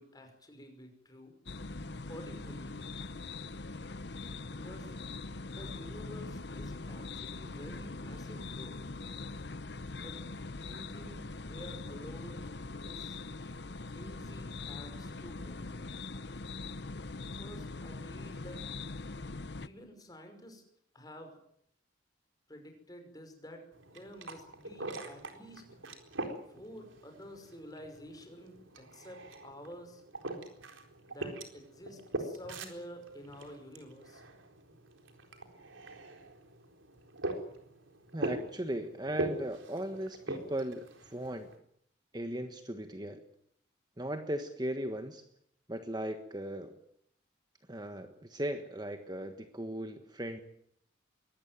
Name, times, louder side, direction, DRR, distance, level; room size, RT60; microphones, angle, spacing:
voice 1, 0.0-1.4 2.1-2.8 4.4-4.9 5.4-8.8 10.0-10.2 10.6-12.5 12.8-13.2 13.9-15.8 17.2-18.6 19.6-20.6 20.9-21.4 22.5-25.6 26.5-30.0 31.1-34.2, equal, 20° left, 5 dB, 5.7 m, -50 dB
sound 1, 1.5-19.7, left 3 dB, 60° left, 0.9 m, -42 dB
sound 2, 23.7-41.6, right 1 dB, 90° right, 4.2 m, -43 dB
voice 2, 38.1-41.5 42.1-43.2 44.0-45.2 45.7-46.8 47.7-50.4, right 1 dB, 20° right, 7 dB, 1.4 m, -37 dB
23.0 x 18.5 x 9.3 m, 0.71 s
head